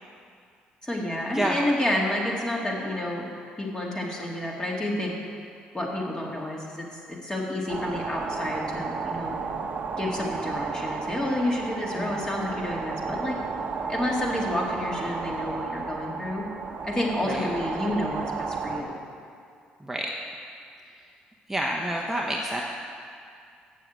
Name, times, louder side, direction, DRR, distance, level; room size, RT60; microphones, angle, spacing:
voice 1, 0.8-3.3 3.6-5.2 5.7-9.4 10.0-13.4 13.9-16.4 16.8-19.0, left 1 dB, 20° left, -2 dB, 2.2 m, -29 dB
sound 1, 7.7-18.8, right 4 dB, 45° right, 1.0 m, -33 dB
voice 2, 11.9-12.2 17.2-17.5 19.8-20.1 21.0-21.1 21.5-22.6, right 1 dB, 5° right, -1 dB, 0.9 m, -29 dB
7.5 x 7.0 x 8.1 m, 2.3 s
supercardioid pair, 70°, 4 cm